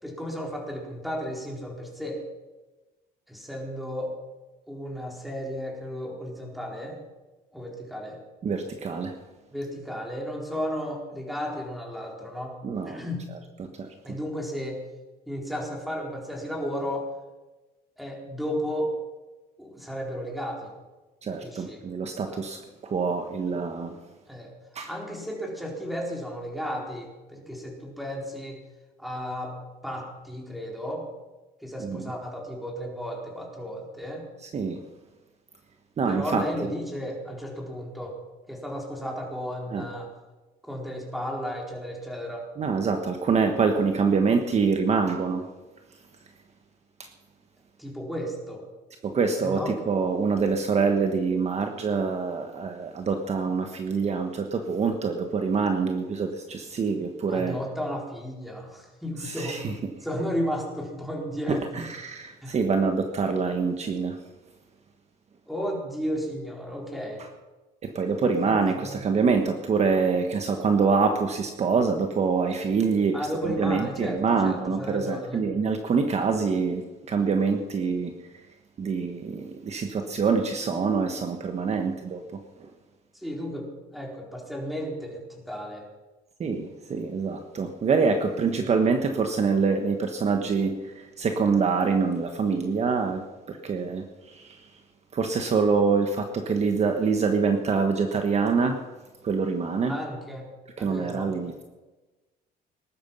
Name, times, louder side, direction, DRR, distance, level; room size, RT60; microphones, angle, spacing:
voice 1, 0.0-2.2 3.3-4.1 4.7-7.0 7.5-8.2 9.5-12.6 12.8-13.3 14.0-14.8 15.3-17.1 18.0-18.9 19.6-20.7 21.4-21.8 22.3-22.4 24.3-24.5 24.9-28.6 29.0-29.6 29.8-31.1 31.6-34.3 36.1-38.1 38.5-40.1 40.6-42.5 47.8-48.6 49.4-49.7 57.3-59.6 60.0-61.6 62.4-62.6 65.5-67.2 68.3-69.0 73.1-75.4 83.1-85.8 99.9-100.4 100.8-101.3, equal, ahead, -1 dB, 4.3 m, -33 dB
voice 2, 8.4-9.1 12.6-13.0 13.6-13.9 21.2-24.0 24.7-24.9 31.8-32.1 34.4-34.8 36.0-36.7 39.7-39.9 42.6-45.5 47.0-47.1 49.0-57.6 59.2-59.7 61.5-64.2 67.8-73.3 73.6-78.1 78.8-82.7 86.4-94.7 95.1-98.8 99.2-100.0 100.8-101.6, right 5 dB, 40° right, 5 dB, 1.4 m, -25 dB
19.5 x 11.5 x 5.6 m, 1.2 s
cardioid pair, 110°, 17 cm